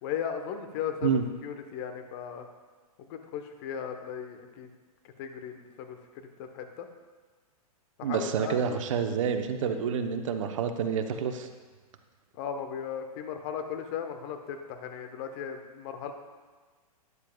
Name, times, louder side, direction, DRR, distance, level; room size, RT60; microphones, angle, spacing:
voice 1, 0.0-2.5 3.0-4.7 5.0-6.9 8.0-8.8 12.3-16.1, left 8 dB, 40° left, 6 dB, 1.1 m, -37 dB
voice 2, 8.0-11.5, right 7 dB, 55° right, 7 dB, 0.9 m, -28 dB
13.0 x 9.7 x 2.3 m, 1.4 s
figure-of-eight pair, 110°, 20 cm